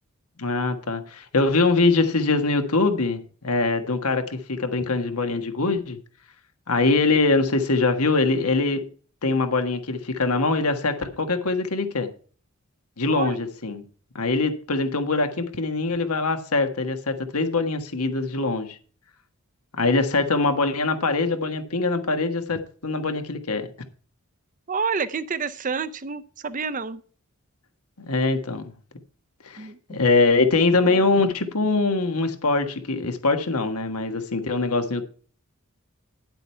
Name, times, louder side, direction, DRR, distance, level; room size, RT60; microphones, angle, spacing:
voice 1, 0.4-6.0 6.7-8.9 9.2-12.1 13.0-13.8 14.1-18.8 19.8-23.7 28.0-28.6 29.4-35.0, left 3 dB, 90° left, 1.6 m, -23 dB
voice 2, 24.7-27.0 29.6-29.8 30.8-31.0, right 5 dB, 35° right, 0.7 m, -29 dB
10.5 x 7.9 x 4.5 m
head